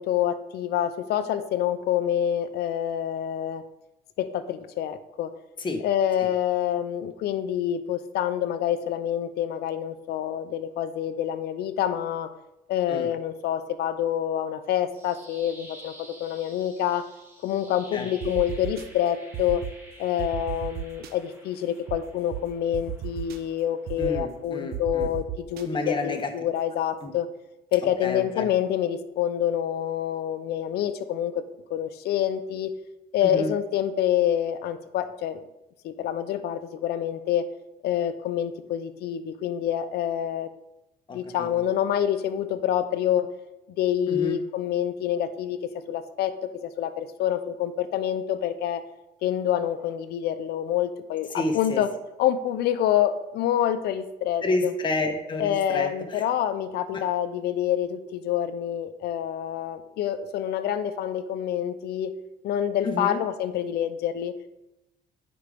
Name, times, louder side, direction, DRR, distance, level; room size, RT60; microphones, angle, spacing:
voice 1, 0.0-3.6 4.2-5.3 5.8-12.3 12.7-17.1 17.4-19.6 20.0-27.3 27.7-31.4 31.7-32.7 33.1-35.4 35.8-37.5 37.8-40.5 41.1-43.3 43.8-48.8 49.2-51.9 52.2-54.7 55.4-62.1 62.4-64.3, left 10 dB, 70° left, 11 dB, 0.7 m, -27 dB
sound 1, 14.6-24.7, right 1 dB, 15° right, 2.1 m, -51 dB
sound 2, 18.2-18.8 19.3-19.7 20.2-21.1 21.9-22.0 22.3-22.4 22.7-23.4 23.9-24.2 24.7-25.6, right 12 dB, 65° right, 0.6 m, -33 dB
voice 2, 24.0-25.1 25.6-26.3 27.0-27.1 28.0-28.5 33.2-33.5 41.1-41.5 44.1-44.4 51.3-51.8 54.4-56.2 56.9-57.0 62.8-63.2, left 2 dB, 30° left, 4 dB, 1.2 m, -30 dB
9.6 x 5.1 x 3.6 m, 0.92 s
cardioid pair, 110°, 17 cm